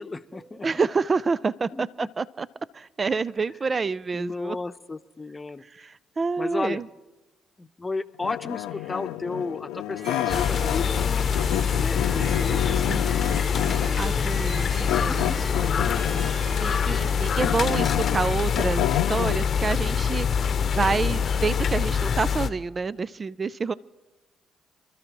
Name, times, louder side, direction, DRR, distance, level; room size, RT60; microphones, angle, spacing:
voice 1, 0.0-0.7 1.7-2.1 4.1-5.6 6.4-6.8 7.6-11.1 11.8-14.3 14.9-16.3, left 3 dB, 30° left, 10 dB, 0.8 m, -34 dB
voice 2, 0.6-2.5 2.7-4.6 5.7-6.9 12.9-13.4 14.0-15.3 16.6-23.7, right 4 dB, 40° right, 19 dB, 0.4 m, -28 dB
sound 1, 8.2-11.1 11.3-14.0 14.9-16.5 16.9-19.4, left 14 dB, 85° left, 0.5 m, -29 dB
Harp, 10.0-18.7, right 1 dB, 70° right, 3.8 m, -40 dB
sound 2, 10.3-22.5, left 7 dB, 55° left, 0.8 m, -25 dB
28.5 x 13.0 x 3.0 m, 1.1 s
hypercardioid pair, 50°, 0 cm